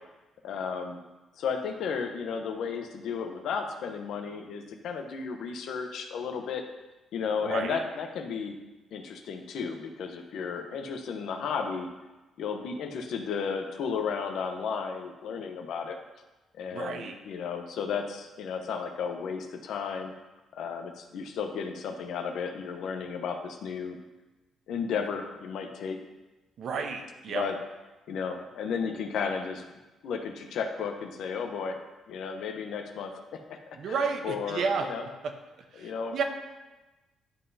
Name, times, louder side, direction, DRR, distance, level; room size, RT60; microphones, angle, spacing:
voice 1, 0.4-1.0 1.4-6.6 7.1-8.6 8.9-11.9 12.4-16.0 16.6-20.1 20.5-24.0 24.7-26.0 27.3-27.6 28.1-29.6 30.0-31.8 32.1-33.6 33.8-35.0 35.8-36.2, left 6 dB, 75° left, 5 dB, 0.9 m, -33 dB
voice 2, 7.4-7.8 16.7-17.2 26.6-27.4 33.8-34.9 35.2-35.3 35.7-36.2, right 5 dB, 65° right, 5 dB, 0.9 m, -31 dB
11.5 x 5.5 x 2.8 m, 1.1 s
cardioid pair, 90°, 0 cm